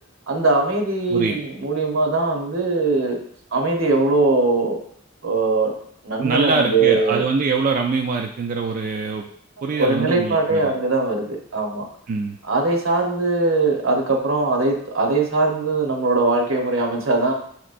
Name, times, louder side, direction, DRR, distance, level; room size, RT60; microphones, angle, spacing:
voice 1, 0.3-3.2 3.5-4.8 5.2-5.7 6.0-7.2 9.7-11.9 12.5-17.3, right 3 dB, 75° right, 1 dB, 1.0 m, -21 dB
voice 2, 6.2-9.3 9.6-10.7 12.1-12.4, right 4 dB, 40° right, 2 dB, 0.3 m, -23 dB
6.9 x 3.0 x 2.5 m, 0.64 s
head